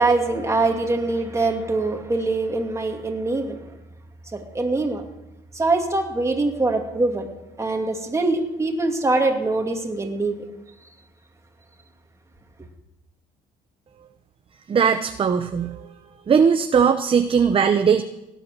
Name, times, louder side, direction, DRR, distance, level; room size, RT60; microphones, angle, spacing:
voice 1, 0.0-3.6 4.3-5.0 5.5-7.3 7.6-10.4, right 2 dB, 15° right, 3 dB, 2.4 m, -23 dB
voice 2, 14.7-15.9 16.3-18.0, right 6 dB, 30° right, 8 dB, 0.8 m, -19 dB
17.5 x 10.0 x 6.8 m, 0.96 s
cardioid pair, 110°, 17 cm